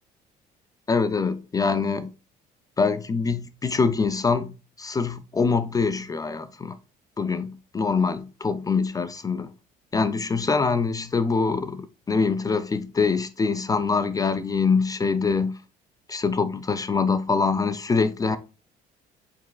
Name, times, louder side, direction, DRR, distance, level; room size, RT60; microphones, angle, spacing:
voice 1, 0.9-2.1 2.8-6.8 7.2-9.5 9.9-15.6 16.1-18.4, left 4 dB, 20° left, 0.3 m, -24 dB
5.0 x 4.0 x 2.2 m
cardioid pair, 110°, 17 cm